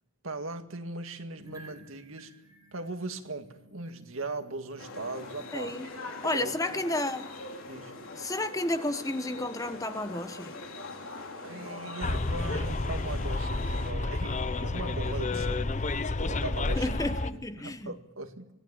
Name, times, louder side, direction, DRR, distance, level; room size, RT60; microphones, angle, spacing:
voice 1, 0.2-2.3 2.7-5.7 6.2-6.8 7.7-7.9 11.4-15.7 16.2-17.0 17.3-18.5, right 2 dB, 75° right, 2.1 m, -39 dB
sound 1, 1.4-12.5, right 1 dB, 20° right, 4.9 m, -59 dB
sound 2, 4.8-13.9, left 3 dB, 85° left, 3.8 m, -42 dB
voice 2, 5.5-5.9 6.2-7.3 8.2-10.6 15.3-15.4 16.7-17.9, left 1 dB, 15° left, 1.1 m, -32 dB
Bus, 12.0-17.3, left 2 dB, 35° left, 0.8 m, -30 dB
25.0 x 18.0 x 8.8 m
head